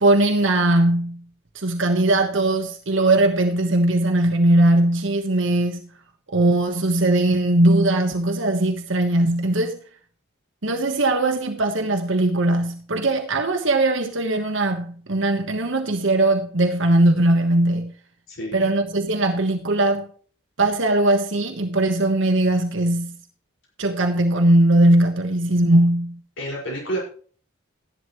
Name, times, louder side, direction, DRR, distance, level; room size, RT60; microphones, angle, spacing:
voice 1, 0.0-1.2 1.5-5.8 6.3-9.8 10.6-17.9 18.5-20.1 20.6-23.2 23.8-26.2, right 1 dB, 65° right, 1.3 m, -19 dB
voice 2, 18.3-18.7 26.4-27.0, right 1 dB, 65° left, 5.4 m, -29 dB
14.0 x 11.0 x 3.1 m
head